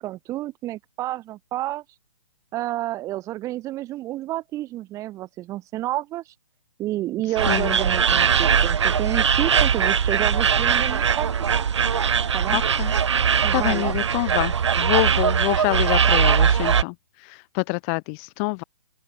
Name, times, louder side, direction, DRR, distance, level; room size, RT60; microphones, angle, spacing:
voice 1, 0.0-1.8 2.5-6.2 6.8-11.7 12.3-12.6 13.4-13.9, right 15 dB, 20° right, 6.2 m, -30 dB
sound 1, 7.4-16.8, right 7 dB, 60° right, 2.2 m, -20 dB
voice 2, 7.5-7.8 12.5-12.9 13.2-16.9 17.2-18.6, left 36 dB, 25° left, 3.7 m, -26 dB
open air
hypercardioid pair, 145°, 16 cm